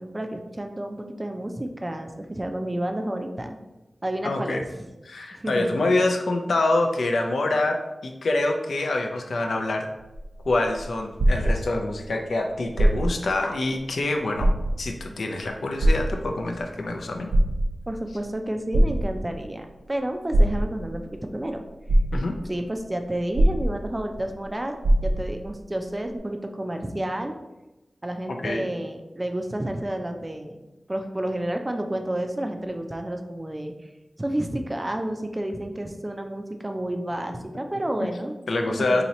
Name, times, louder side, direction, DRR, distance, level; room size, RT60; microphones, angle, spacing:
voice 1, 0.0-3.6 4.0-4.9 5.3-5.8 17.9-21.6 22.5-24.7 25.0-27.4 28.0-30.6 30.9-33.9 34.2-38.4 38.6-39.0, right 1 dB, 25° right, 5 dB, 0.4 m, -30 dB
voice 2, 4.2-4.6 5.0-9.9 10.5-14.5 14.8-17.3 22.1-22.3 28.3-28.7 37.3-37.4 38.0-38.1 38.5-39.0, left 2 dB, 85° left, 3 dB, 0.4 m, -26 dB
sound 1, 10.0-12.1 12.7-13.3 13.8-13.9 14.3-15.1 15.8-16.6 17.1-18.0 18.7-19.5 20.3-21.0 21.5-21.6 21.9-22.6 23.3-24.2 24.4-24.5 24.8-25.5 26.2-26.3, right 1 dB, 90° right, 0.7 m, -21 dB
2.9 x 2.8 x 4.1 m, 1.0 s
wide cardioid pair, 90°, 0 cm